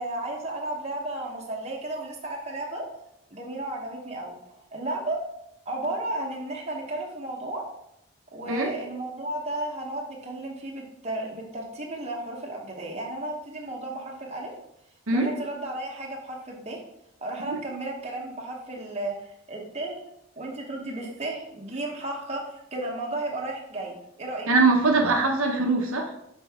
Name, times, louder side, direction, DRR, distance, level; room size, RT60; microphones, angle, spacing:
voice 1, 0.0-2.9 3.3-5.2 5.7-7.7 8.3-14.5 15.1-16.8 17.2-20.0 20.4-22.4 22.7-24.5, right 2 dB, 30° right, -1 dB, 0.9 m, -33 dB
voice 2, 24.5-26.1, right 3 dB, 70° right, 2 dB, 0.8 m, -22 dB
6.1 x 4.5 x 3.5 m, 0.82 s
head